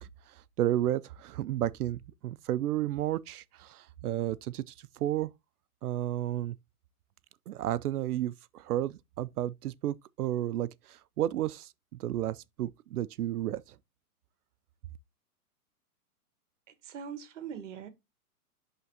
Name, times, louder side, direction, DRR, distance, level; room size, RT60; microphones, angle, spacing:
voice 1, 0.0-5.3 5.8-6.5 7.5-11.7 12.0-13.8, right 13 dB, 75° right, 0.5 m, -32 dB
voice 2, 16.8-17.9, right 7 dB, 50° right, 1.2 m, -41 dB
10.5 x 3.6 x 2.8 m
hypercardioid pair, 150°, 46 cm